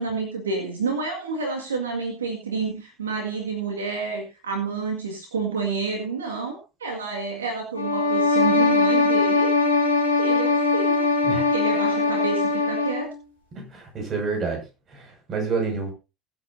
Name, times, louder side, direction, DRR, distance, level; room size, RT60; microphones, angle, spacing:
voice 1, 0.0-9.5 10.2-11.1 11.3-13.1, right 4 dB, 75° right, 2 dB, 1.9 m, -29 dB
sound 1, 7.7-13.1, left 3 dB, 80° left, 4.8 m, -21 dB
voice 2, 13.5-14.6 14.9-15.9, right 4 dB, 35° right, 2 dB, 6.1 m, -28 dB
21.0 x 7.9 x 2.7 m, 0.30 s
figure-of-eight pair, 65°, 0 cm